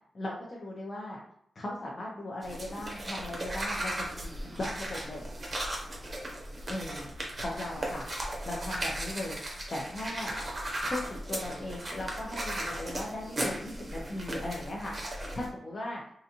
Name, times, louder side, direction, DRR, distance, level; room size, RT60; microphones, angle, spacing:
voice 1, 0.1-1.2 1.5-5.3 6.7-7.1 7.4-8.0 8.4-9.4 9.7-10.3 10.8-14.9 15.3-16.0, left 1 dB, 40° left, -4 dB, 0.7 m, -38 dB
sound 1, 2.4-15.5, right 1 dB, 30° right, 0.7 m, -36 dB
4.0 x 2.5 x 2.8 m, 0.70 s
wide cardioid pair, 135°, 0 cm